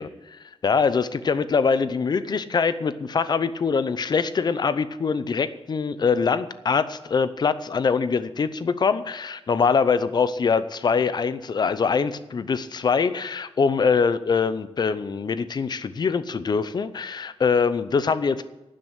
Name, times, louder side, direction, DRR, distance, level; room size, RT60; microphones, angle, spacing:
voice 1, 0.0-18.4, left 5 dB, 40° left, 14 dB, 0.6 m, -23 dB
12.0 x 7.6 x 8.2 m, 1.0 s
wide cardioid pair, 155°, 11 cm